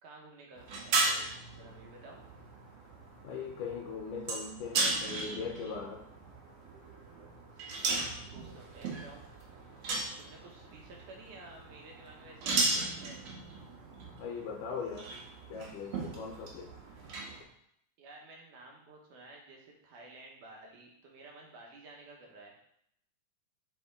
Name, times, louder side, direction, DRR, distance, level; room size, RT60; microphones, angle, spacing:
voice 1, 0.0-2.2 7.8-9.2 10.2-13.2 18.0-22.5, right 2 dB, 80° right, -1 dB, 2.7 m, -53 dB
sound 1, 0.6-17.4, right 3 dB, 60° right, 2.0 m, -37 dB
voice 2, 3.2-6.0 14.2-15.1 15.5-16.7, left 5 dB, 90° left, 2 dB, 2.2 m, -40 dB
6.9 x 4.3 x 3.6 m, 0.72 s
omnidirectional pair, 3.6 m